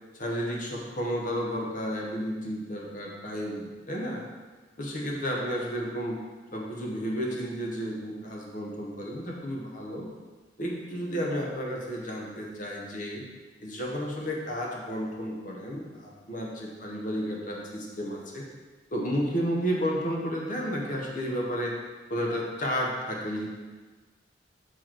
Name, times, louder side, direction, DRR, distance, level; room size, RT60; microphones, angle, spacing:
voice 1, 0.1-4.2 4.8-6.2 6.5-10.1 10.6-13.2 13.6-18.5 18.9-21.7 22.1-23.5, equal, 45° left, -1 dB, 0.9 m, -32 dB
6.1 x 4.6 x 4.5 m, 1.3 s
head